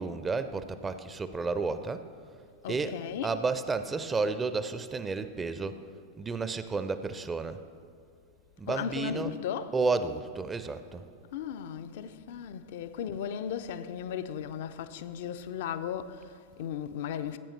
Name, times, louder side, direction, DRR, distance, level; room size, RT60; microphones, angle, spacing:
voice 1, 0.0-2.0 2.7-5.8 6.2-7.6 8.6-9.4 9.7-11.0, right 4 dB, 15° right, 0.5 m, -32 dB
voice 2, 2.6-3.4 8.7-9.8 11.3-17.4, left 8 dB, 55° left, 0.4 m, -36 dB
16.0 x 8.8 x 3.2 m
figure-of-eight pair, 90°, 0 cm